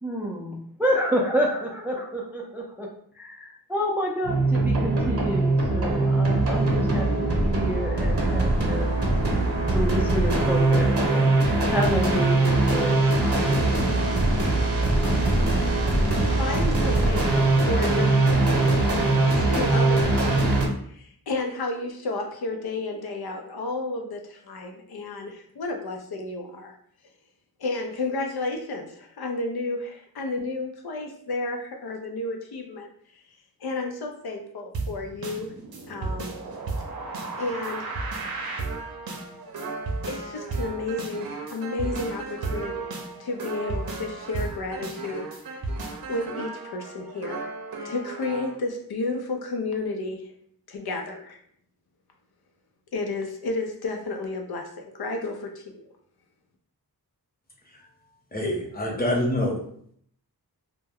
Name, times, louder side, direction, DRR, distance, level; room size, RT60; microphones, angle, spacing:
voice 1, 0.0-2.9 3.1-9.0 9.7-11.3 11.7-13.0, equal, 5° right, -2 dB, 0.3 m, -29 dB
sound 1, 4.2-20.7, right 2 dB, 40° right, 0.8 m, -22 dB
voice 2, 16.4-18.9 19.3-20.3 20.8-26.7 27.6-32.9 33.6-35.5 35.9-36.4 37.4-37.9 39.3-39.4 40.1-42.9 43.2-45.8 46.1-47.5 47.8-50.3 50.7-51.4 52.9-55.9, left 2 dB, 70° left, 3 dB, 0.5 m, -32 dB
sound 2, 34.7-48.6, right 3 dB, 65° right, 0.6 m, -34 dB
voice 3, 58.3-59.6, left 1 dB, 25° left, -2 dB, 0.8 m, -26 dB
2.2 x 2.1 x 3.4 m, 0.64 s
wide cardioid pair, 80°, 38 cm